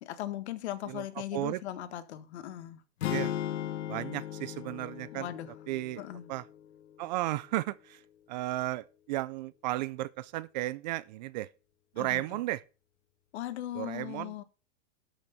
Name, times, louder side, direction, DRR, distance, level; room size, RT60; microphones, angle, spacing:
voice 1, 0.0-2.8 5.1-5.5 6.0-6.3 12.0-12.2 13.3-14.4, left 13 dB, 60° left, 1.6 m, -38 dB
sound 1, 3.0-7.2, left 11 dB, 80° left, 1.3 m, -37 dB
voice 2, 3.9-5.3 5.7-6.0 6.3-6.5 7.0-8.0 8.3-11.5 11.9-12.6 13.7-14.3, right 17 dB, 40° right, 0.4 m, -34 dB
12.5 x 6.3 x 5.8 m
hypercardioid pair, 140°, 36 cm